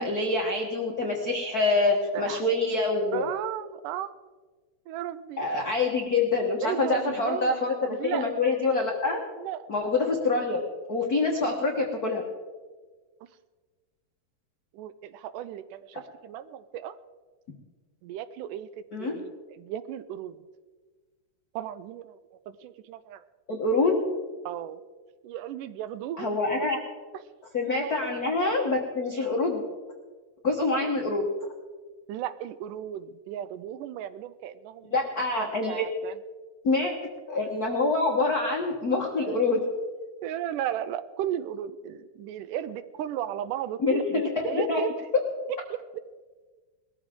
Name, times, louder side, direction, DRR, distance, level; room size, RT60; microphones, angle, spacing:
voice 1, 0.0-3.3 5.4-9.2 9.7-10.6 10.9-12.2 18.9-19.1 23.5-23.9 26.2-26.8 27.5-29.6 30.4-31.2 34.9-35.8 36.6-36.9 37.3-39.6 43.8-44.8, left 3 dB, 65° left, 0 dB, 0.9 m, -26 dB
voice 2, 3.1-4.1 4.9-5.5 6.6-7.6 7.9-8.3 9.4-9.7 14.7-17.0 18.0-18.7 19.0-20.4 21.6-22.2 22.5-23.2 24.5-24.8 25.2-26.7 27.8-27.9 29.1-29.3 30.8-30.9 32.1-34.9 35.4-36.1 39.2-39.4 40.2-45.0 45.7-46.0, right 11 dB, 80° right, 13 dB, 2.0 m, -35 dB
20.0 x 13.5 x 3.7 m, 1.4 s
omnidirectional pair, 3.8 m